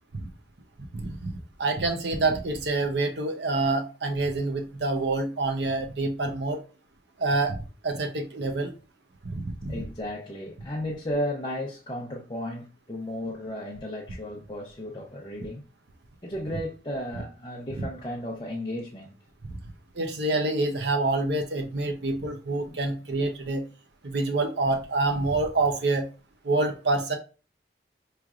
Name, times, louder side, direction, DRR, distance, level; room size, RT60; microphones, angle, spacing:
voice 1, 0.9-6.6 7.2-7.6 7.8-8.7 9.3-9.7 17.8-17.9 19.9-23.6 24.0-26.1 26.4-27.2, right 2 dB, 70° right, 0.7 m, -27 dB
voice 2, 9.7-15.6 16.2-19.2 22.7-22.8, left 1 dB, 25° left, 0.6 m, -34 dB
5.8 x 3.2 x 2.4 m
head